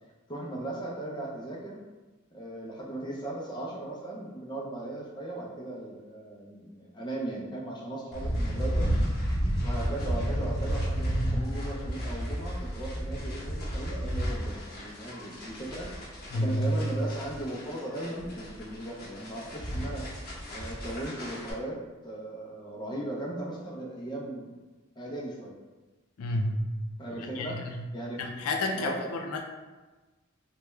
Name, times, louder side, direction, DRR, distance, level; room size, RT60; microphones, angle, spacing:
voice 1, 0.3-1.8 2.3-8.9 9.6-20.0 20.5-21.8 22.0-24.5 25.0-25.5 27.0-27.6 27.9-28.2 28.7-29.0, right 1 dB, 20° left, -3 dB, 0.5 m, -37 dB
sound 1, 8.1-21.5, equal, 50° left, 0.8 m, -32 dB
voice 2, 16.3-16.8 26.2-26.5 27.4-27.8 28.2-29.4, left 1 dB, 90° left, 2 dB, 0.4 m, -30 dB
3.3 x 2.2 x 3.0 m, 1.2 s
head